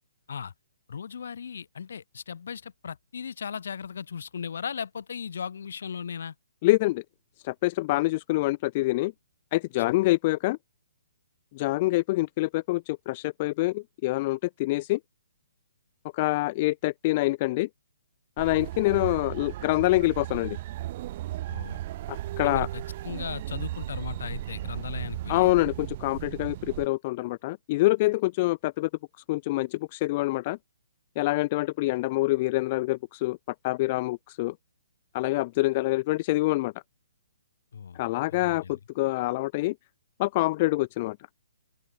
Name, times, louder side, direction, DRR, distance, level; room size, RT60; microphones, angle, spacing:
voice 1, 0.9-6.3 9.9-10.0 21.5-21.8 22.4-25.5 37.7-38.0 38.3-38.8, left 7 dB, 65° left, 5.6 m, -37 dB
voice 2, 6.6-7.0 7.4-9.1 9.5-10.6 11.5-15.0 16.1-17.7 18.4-20.6 22.1-22.7 25.3-28.9 29.3-30.6 31.2-33.4 33.6-34.5 35.1-36.7 38.0-39.7 40.2-41.2, left 20 dB, 35° left, 0.3 m, -26 dB
sound 1, 18.4-26.9, right 15 dB, 40° right, 4.6 m, -36 dB
open air
hypercardioid pair, 140°, 0 cm